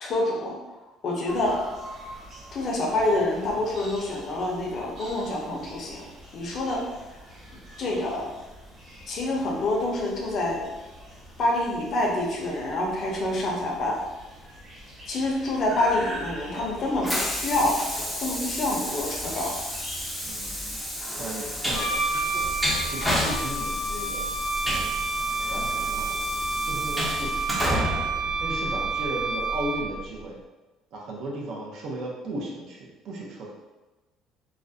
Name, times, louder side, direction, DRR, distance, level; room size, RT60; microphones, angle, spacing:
voice 1, 0.0-0.6 1.0-1.6 2.5-6.0 6.3-6.9 7.8-8.3 9.1-10.6 11.4-14.0 15.1-17.8 18.2-19.6, left 2 dB, 45° left, -2 dB, 0.5 m, -27 dB
sound 1, 1.3-20.9, right 1 dB, 45° right, 1.0 m, -44 dB
Train, 15.9-29.1, equal, ahead, 0.5 m, -31 dB
voice 2, 21.2-22.2 22.9-24.3 25.5-26.1 26.6-27.6 28.4-30.4 30.9-33.5, right 1 dB, 60° right, -2 dB, 0.6 m, -35 dB
Wind instrument woodwind instrument, 21.7-30.0, right 3 dB, 85° left, 0.6 m, -29 dB
2.4 x 2.1 x 2.5 m, 1.1 s
cardioid pair, 130°, 0 cm